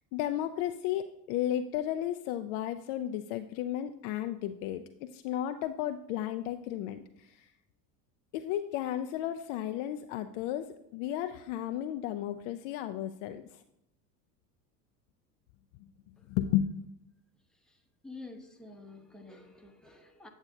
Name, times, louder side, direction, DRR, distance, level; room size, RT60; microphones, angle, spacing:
voice 1, 0.1-7.5 8.3-13.6 16.3-16.7, left 11 dB, 50° left, 8 dB, 0.4 m, -34 dB
voice 2, 18.0-20.3, left 3 dB, ahead, 3 dB, 0.8 m, -49 dB
8.5 x 7.9 x 2.6 m, 0.81 s
hypercardioid pair, 75°, 50 cm